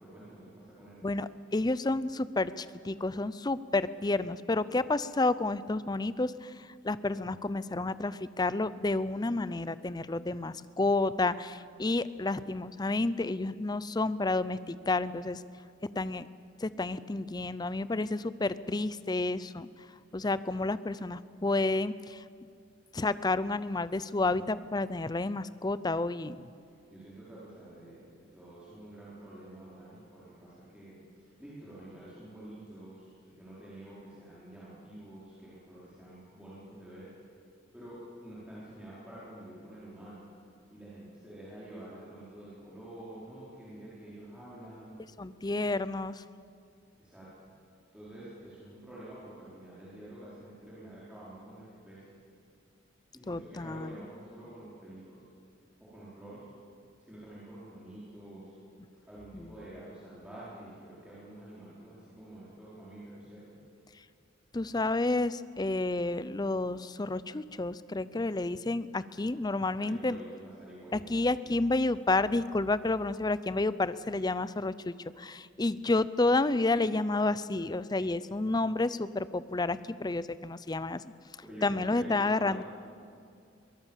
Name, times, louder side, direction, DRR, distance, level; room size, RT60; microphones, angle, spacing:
voice 1, 0.0-1.0 26.9-28.1 28.3-37.1 37.7-40.2 40.7-44.9 47.0-47.5 47.9-52.1 53.1-55.2 55.8-56.5 57.0-58.5 59.0-63.6 69.8-71.1 81.4-82.6, right 1 dB, 5° right, -10 dB, 4.8 m, -48 dB
voice 2, 1.0-15.4 15.9-16.3 16.6-19.9 20.1-22.3 22.9-26.4 45.2-46.2 53.3-53.9 59.3-59.5 64.0-64.1 64.5-70.2 70.9-81.0 81.6-82.6, left 2 dB, 20° left, 16 dB, 0.5 m, -30 dB
23.0 x 18.5 x 7.4 m, 2.3 s
head